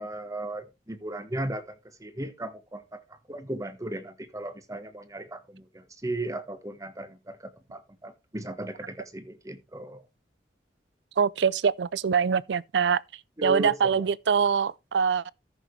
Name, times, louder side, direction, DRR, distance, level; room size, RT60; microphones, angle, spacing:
voice 1, 0.0-10.0 13.4-14.1, right 1 dB, 20° right, 1.2 m, -36 dB
voice 2, 11.2-13.0 13.4-15.3, right 6 dB, 80° right, 0.4 m, -24 dB
14.0 x 6.8 x 3.2 m
head